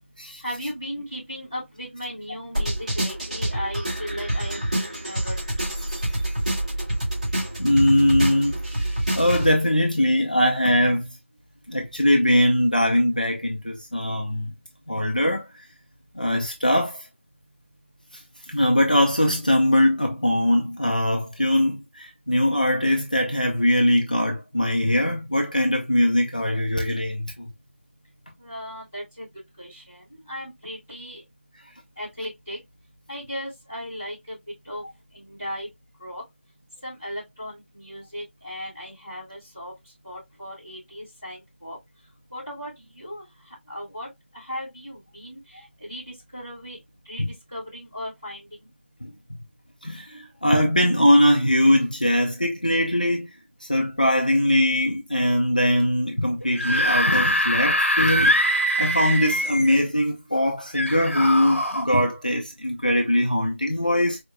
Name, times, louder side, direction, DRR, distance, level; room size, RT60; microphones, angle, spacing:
voice 1, 0.4-5.3 28.4-29.2 29.6-30.0 30.3-31.2 32.0-32.6 33.1-34.3 34.6-34.8 35.1-35.7 36.0-36.2 36.8-39.7 40.0-41.8 42.3-43.2 43.7-44.1 44.3-45.4 45.9-46.0 46.3-46.8 47.1-47.2 47.5-48.4, equal, 5° left, 0.8 m, -36 dB
sound 1, 2.5-9.5, right 1 dB, 35° right, 2.0 m, -27 dB
voice 2, 7.6-8.8 9.1-11.1 11.7-14.5 14.9-15.4 16.2-17.0 18.5-27.3 45.5-45.6 47.2-47.3 49.0-49.1 49.8-53.3 53.6-64.2, left 1 dB, 40° left, 0.4 m, -21 dB
Screaming / Screech, 56.4-59.8 60.7-61.8, equal, 80° left, 1.0 m, -23 dB
4.6 x 2.1 x 2.2 m
figure-of-eight pair, 180°, 7 cm